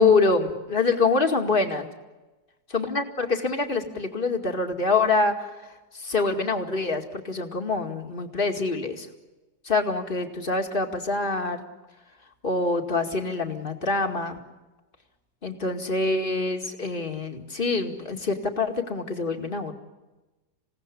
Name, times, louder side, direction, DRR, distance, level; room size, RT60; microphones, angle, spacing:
voice 1, 0.0-1.9 2.7-5.3 5.9-9.1 9.6-11.6 12.4-14.4 15.4-19.7, left 3 dB, 30° left, 4 dB, 2.3 m, -25 dB
28.0 x 17.5 x 9.9 m, 1.1 s
omnidirectional pair, 1.9 m